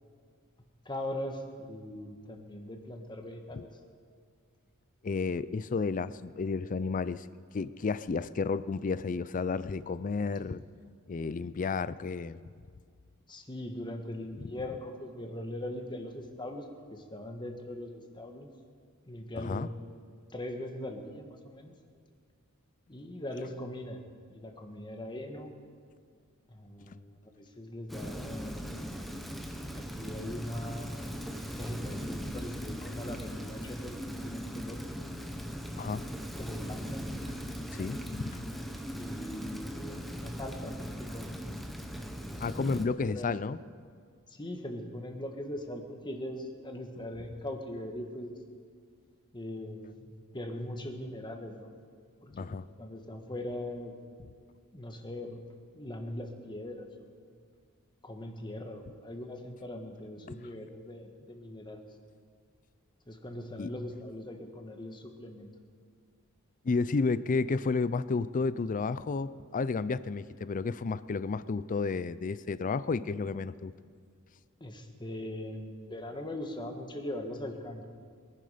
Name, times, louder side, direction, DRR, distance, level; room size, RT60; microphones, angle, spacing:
voice 1, 0.8-3.7 13.3-18.5 19.0-19.7 20.3-21.7 22.9-24.0 24.3-25.5 26.5-28.6 29.7-31.1 31.5-34.8 36.3-37.0 39.0-41.4 42.3-43.3 44.3-48.3 49.3-50.1 50.3-51.8 52.2-53.9 54.7-55.4 55.7-57.1 58.0-61.8 63.1-65.5 74.6-77.8, left 1 dB, 20° left, 4 dB, 1.4 m, -41 dB
voice 2, 5.0-7.3 7.5-10.6 11.1-12.4 14.4-14.5 19.4-19.7 35.8-36.0 37.3-37.4 37.8-38.5 42.4-43.6 52.3-52.7 60.2-60.3 63.6-63.7 66.6-73.7, left 4 dB, 35° left, 16 dB, 0.4 m, -32 dB
Rain, 27.9-42.9, equal, ahead, 0.9 m, -39 dB
22.5 x 11.0 x 5.1 m, 2.1 s
head